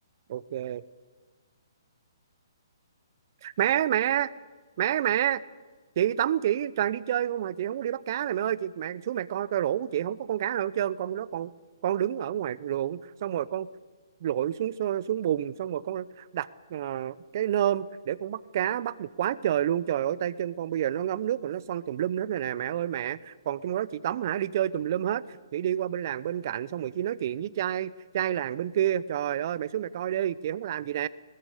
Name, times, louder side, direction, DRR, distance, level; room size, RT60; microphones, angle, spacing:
voice 1, 0.3-0.8 3.4-4.3 4.8-5.4 6.0-11.5 11.8-13.7 14.2-31.1, right 11 dB, 50° right, 18 dB, 0.7 m, -29 dB
21.0 x 20.5 x 8.3 m, 1.4 s
figure-of-eight pair, 130°, 2 cm